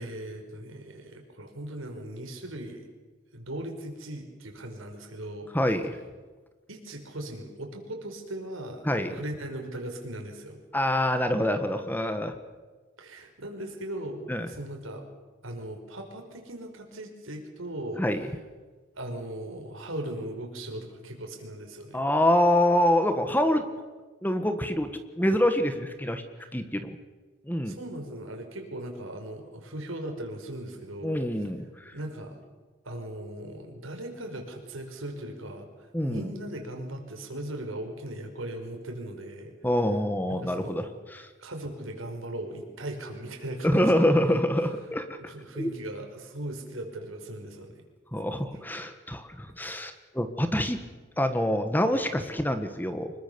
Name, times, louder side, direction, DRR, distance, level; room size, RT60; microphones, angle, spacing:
voice 1, 0.0-2.8 3.3-5.5 6.7-10.6 13.0-15.1 15.4-18.1 18.9-22.0 26.4-26.5 27.6-31.2 31.9-32.4 32.8-39.5 40.3-40.9 41.4-44.4 45.2-47.8, right 1 dB, 90° right, 3 dB, 5.1 m, -38 dB
voice 2, 5.5-6.0 8.8-9.1 10.7-12.4 14.3-14.5 18.0-18.3 21.9-23.6 24.2-24.9 25.2-26.2 26.5-27.0 27.4-27.8 31.0-31.9 35.9-36.3 39.6-41.3 43.6-45.1 45.5-45.7 48.1-50.8 51.2-53.1, left 1 dB, 10° left, 8 dB, 1.5 m, -26 dB
25.5 x 22.0 x 7.0 m, 1.3 s
head